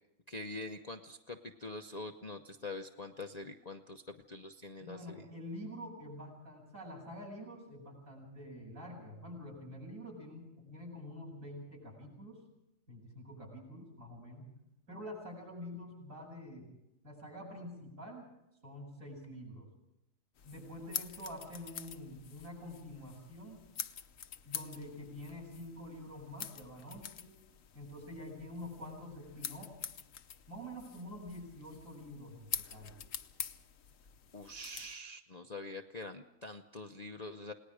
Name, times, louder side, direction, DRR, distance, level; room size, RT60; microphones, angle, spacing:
voice 1, 0.3-5.2 34.3-37.5, left 2 dB, 35° left, 4 dB, 0.8 m, -45 dB
voice 2, 4.8-12.4 12.9-14.5 14.9-16.7 17.0-18.3 18.6-19.7 20.4-23.6 24.4-27.4 27.7-29.7 30.5-33.0, left 1 dB, 55° right, -2 dB, 8.5 m, -47 dB
sound 1, 20.4-34.9, left 8 dB, 60° left, 1.2 m, -46 dB
29.0 x 19.0 x 5.0 m, 0.86 s
omnidirectional pair, 1.6 m